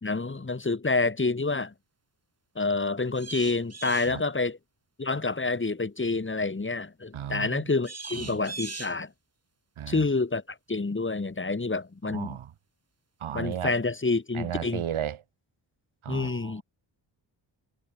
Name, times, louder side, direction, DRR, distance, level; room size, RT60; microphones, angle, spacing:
voice 1, 0.0-1.7 2.6-4.6 5.0-9.1 9.9-10.4 10.7-12.4 13.3-14.8 16.1-16.6, left 3 dB, 25° left, 3.4 m, -28 dB
sound 1, 3.2-4.1 7.8-9.0, right 4 dB, 30° right, 4.6 m, -39 dB
voice 2, 7.1-7.7 8.1-8.4 9.8-10.1 12.0-12.5 13.2-13.7 14.3-15.2 16.0-16.6, right 10 dB, 85° right, 5.9 m, -35 dB
cardioid pair, 80°, 48 cm